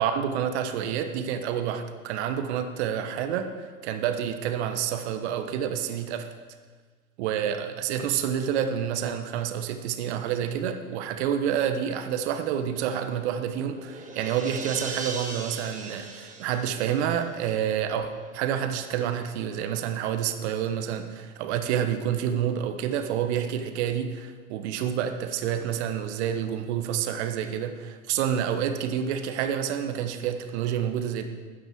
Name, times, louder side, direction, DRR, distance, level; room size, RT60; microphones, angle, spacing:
voice 1, 0.0-6.3 7.2-31.2, right 9 dB, 50° right, 8 dB, 1.3 m, -28 dB
sound 1, 13.4-17.8, right 3 dB, 20° right, 1.7 m, -39 dB
12.5 x 9.2 x 4.6 m, 1.5 s
figure-of-eight pair, 100°, 42 cm